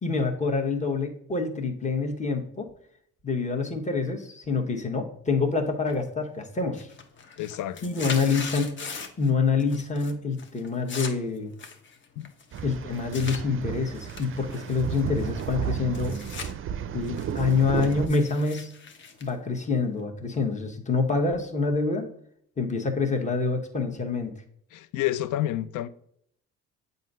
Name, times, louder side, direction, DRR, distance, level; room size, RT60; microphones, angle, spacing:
voice 1, 0.0-2.7 3.2-6.9 7.8-8.8 9.2-11.5 12.6-16.2 16.9-18.7 19.2-22.1 22.6-24.3, left 4 dB, 25° left, 1.2 m, -26 dB
sound 1, 5.9-6.3 6.6-9.3 9.6-10.1 10.4-13.4 13.9-16.5 16.9-20.0, left 5 dB, 40° left, 0.9 m, -40 dB
voice 2, 7.4-7.8 12.2-12.3 24.7-25.9, left 13 dB, 85° left, 0.5 m, -29 dB
sound 2, 12.5-18.1, right 8 dB, 45° right, 0.4 m, -33 dB
7.4 x 2.7 x 5.4 m
cardioid pair, 90°, 30 cm